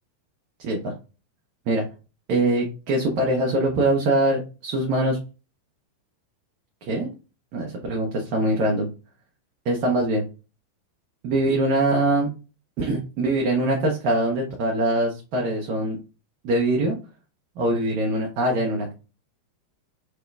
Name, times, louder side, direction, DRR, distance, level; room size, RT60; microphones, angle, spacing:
voice 1, 0.6-0.9 1.7-1.8 2.3-5.2 6.8-7.1 7.5-8.9 9.6-10.2 11.2-12.3 12.8-16.0 16.4-17.0 17.6-18.9, right 1 dB, 45° right, -1 dB, 0.7 m, -23 dB
3.7 x 2.3 x 2.3 m, 0.32 s
figure-of-eight pair, 90°, 0 cm